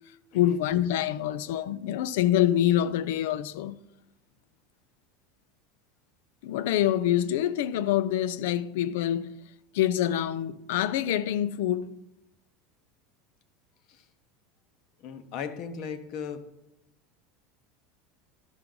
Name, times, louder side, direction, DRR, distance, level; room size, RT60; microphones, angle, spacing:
voice 1, 0.3-3.8 6.4-9.4 9.7-11.9, left 11 dB, 70° left, 0.4 m, -26 dB
voice 2, 15.0-16.4, left 7 dB, 40° left, 0.8 m, -37 dB
12.5 x 5.9 x 3.8 m
supercardioid pair, 180°, 0 cm